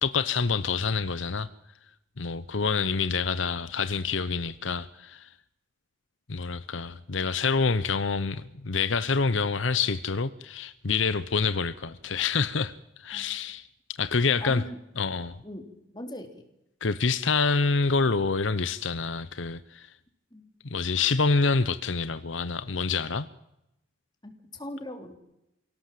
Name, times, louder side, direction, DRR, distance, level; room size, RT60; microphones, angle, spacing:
voice 1, 0.0-1.5 2.2-5.3 6.3-12.7 13.0-13.7 14.0-14.6 15.0-15.4 16.8-19.9 20.6-23.3, left 4 dB, 80° left, 0.9 m, -27 dB
voice 2, 14.4-14.8 15.4-15.7 15.9-16.3 20.3-20.5 24.2-25.2, left 1 dB, 20° left, 3.8 m, -39 dB
26.5 x 17.5 x 7.7 m
head